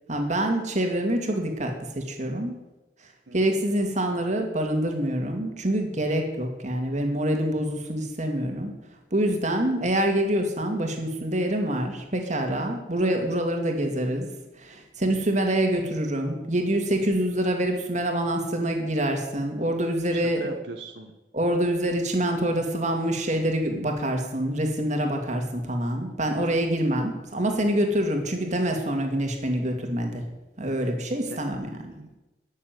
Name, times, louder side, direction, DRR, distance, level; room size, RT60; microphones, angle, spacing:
voice 1, 0.1-2.6 3.3-8.7 9.1-14.3 14.6-20.4 21.3-30.2 30.6-31.7, right 1 dB, 45° right, 3 dB, 2.2 m, -26 dB
voice 2, 3.3-3.6 20.1-21.1 31.3-32.2, right 3 dB, 80° right, 3 dB, 1.3 m, -41 dB
12.0 x 7.3 x 9.3 m, 1.0 s
head